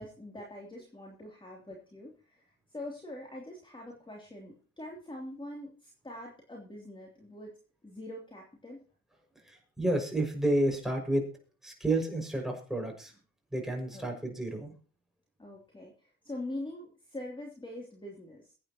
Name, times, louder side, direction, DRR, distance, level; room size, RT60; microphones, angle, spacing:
voice 1, 0.0-2.4 2.7-7.5 7.8-8.8 13.9-14.1 15.4-18.5, left 1 dB, 15° left, -1 dB, 3.1 m, -43 dB
voice 2, 9.4-11.3 11.6-13.1 13.5-14.7, right 1 dB, ahead, 1 dB, 6.1 m, -30 dB
23.5 x 9.3 x 3.0 m, 0.38 s
cardioid pair, 90°, 30 cm